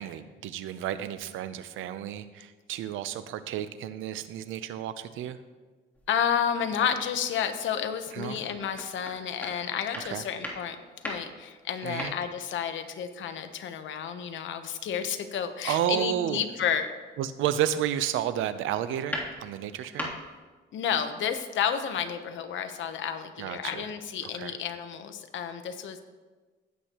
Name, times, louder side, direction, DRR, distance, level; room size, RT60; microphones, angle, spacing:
voice 1, 0.0-5.4 8.1-8.4 10.1-10.2 11.8-12.1 15.6-16.4 17.2-20.1 23.4-23.9 24.4-24.5, right 11 dB, 90° right, 12 dB, 0.7 m, -31 dB
sound 1, 5.9-6.4 6.9-7.1 7.6-12.7 13.1-13.6 15.6-15.8 16.8-17.1 17.5-18.1 18.5-20.4, left 1 dB, 10° left, 3.1 m, -40 dB
voice 2, 6.1-16.9 20.7-26.0, left 8 dB, 75° left, 9 dB, 1.0 m, -31 dB
16.5 x 8.3 x 3.0 m, 1.3 s
cardioid pair, 90°, 20 cm